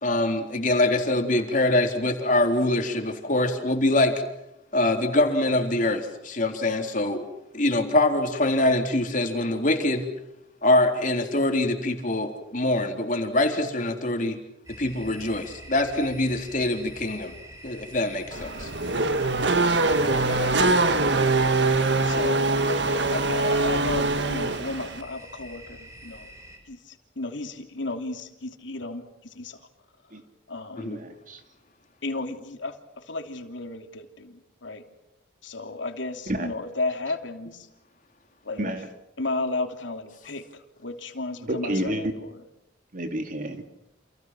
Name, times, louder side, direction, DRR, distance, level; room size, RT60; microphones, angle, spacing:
voice 1, 0.0-4.2 4.7-7.2 7.5-10.1 10.6-14.4 14.8-17.3 17.6-18.7 30.8-31.0, left 2 dB, 45° left, 4 dB, 3.8 m, -24 dB
sound 1, 14.6-26.6, right 1 dB, 20° right, 7.8 m, -45 dB
Race car auto racing / Accelerating revving vroom, 18.3-25.0, right 3 dB, 65° right, 1.8 m, -23 dB
voice 2, 19.9-20.8 22.0-26.3 26.7-29.6 30.5-30.9 32.0-34.8 35.4-37.7 38.4-38.8 39.2-42.4, left 2 dB, 85° left, 5 dB, 3.0 m, -33 dB
voice 3, 30.8-31.4 36.3-36.5 38.6-38.8 41.4-42.0 42.9-43.6, right 1 dB, 45° right, 6 dB, 3.1 m, -30 dB
30.0 x 28.5 x 6.1 m, 0.82 s
head